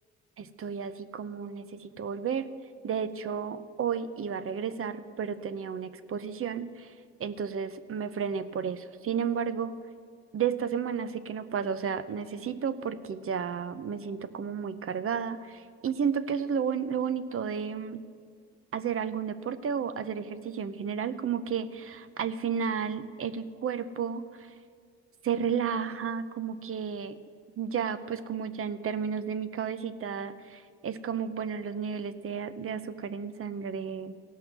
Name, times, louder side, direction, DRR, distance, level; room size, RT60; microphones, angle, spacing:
voice 1, 0.4-2.5 2.8-6.9 7.2-9.7 10.3-18.0 18.7-24.5 25.2-27.2 27.6-34.2, right 7 dB, 45° right, 13 dB, 0.7 m, -32 dB
17.0 x 5.7 x 7.4 m, 2.1 s
cardioid pair, 90°, 30 cm